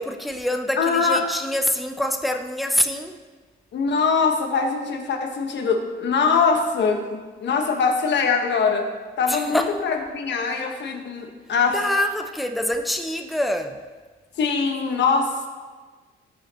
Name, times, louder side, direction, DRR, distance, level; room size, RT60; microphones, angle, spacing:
voice 1, 0.0-3.2 9.3-9.7 11.7-13.8, left 1 dB, ahead, 5 dB, 0.6 m, -25 dB
voice 2, 0.8-1.2 3.7-8.9 9.2-11.8 14.4-15.5, left 5 dB, 65° left, 3 dB, 1.3 m, -22 dB
14.0 x 5.8 x 3.0 m, 1.4 s
cardioid pair, 90°, 20 cm